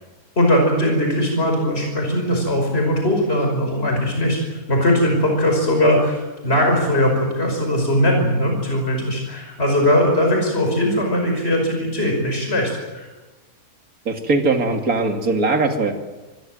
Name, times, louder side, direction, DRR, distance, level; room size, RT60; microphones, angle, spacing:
voice 1, 0.4-13.1, equal, 40° left, 1 dB, 5.9 m, -20 dB
voice 2, 14.1-15.9, right 3 dB, 70° right, 5 dB, 2.9 m, -20 dB
26.5 x 21.5 x 7.8 m, 1.2 s
omnidirectional pair, 1.6 m